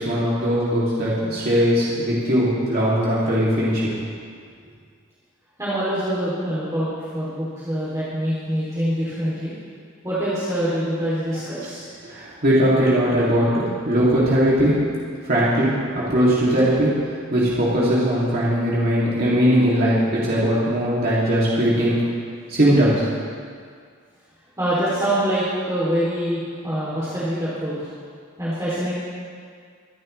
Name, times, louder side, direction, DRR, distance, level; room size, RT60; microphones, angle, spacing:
voice 1, 0.0-3.9 12.0-14.7 15.2-16.9 17.3-22.0 22.5-23.1, equal, 50° right, -8 dB, 2.9 m, -19 dB
voice 2, 5.6-9.5 10.0-12.0 24.6-27.8 28.4-28.9, right 1 dB, 15° right, -10 dB, 3.2 m, -25 dB
24.0 x 11.5 x 3.4 m, 2.1 s
head